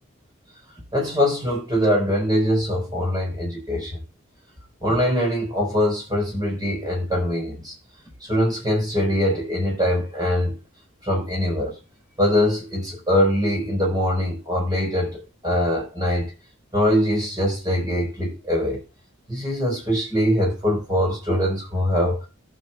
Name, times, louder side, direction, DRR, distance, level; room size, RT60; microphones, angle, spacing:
voice 1, 0.9-4.0 4.8-7.7 8.2-10.6 11.0-11.8 12.2-16.3 16.7-18.8 19.3-22.3, equal, 20° right, 4.3 m, -22 dB
18.5 x 6.5 x 2.2 m
head